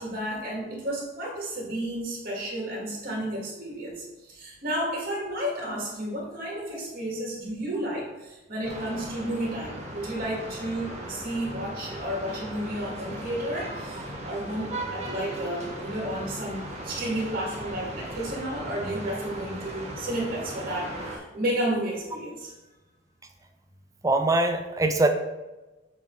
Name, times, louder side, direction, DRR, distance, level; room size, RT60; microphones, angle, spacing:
voice 1, 0.0-22.5, right 1 dB, 50° right, -3 dB, 2.2 m, -32 dB
sound 1, 8.6-21.2, right 1 dB, 35° right, 1.3 m, -38 dB
voice 2, 24.0-25.1, right 2 dB, 15° right, 6 dB, 0.4 m, -23 dB
7.1 x 3.1 x 4.6 m, 1.1 s
head